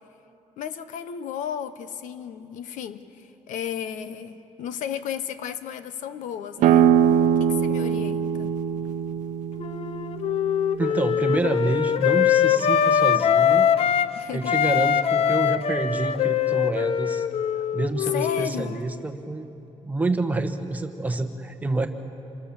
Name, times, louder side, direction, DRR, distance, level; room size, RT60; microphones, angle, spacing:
voice 1, 0.6-6.9 7.4-8.5 14.1-14.5 18.1-18.8, left 8 dB, 80° left, 12 dB, 1.1 m, -34 dB
sound 1, 6.6-12.0, right 9 dB, 75° right, 0.8 m, -23 dB
Wind instrument woodwind instrument, 9.6-14.1 14.4-18.9, left 9 dB, 50° left, 0.7 m, -22 dB
voice 2, 10.8-13.7 14.3-17.3 17.7-19.5 19.8-21.9, right 2 dB, 10° right, 6 dB, 1.2 m, -27 dB
27.5 x 25.0 x 7.2 m, 2.9 s
cardioid pair, 170°, 13 cm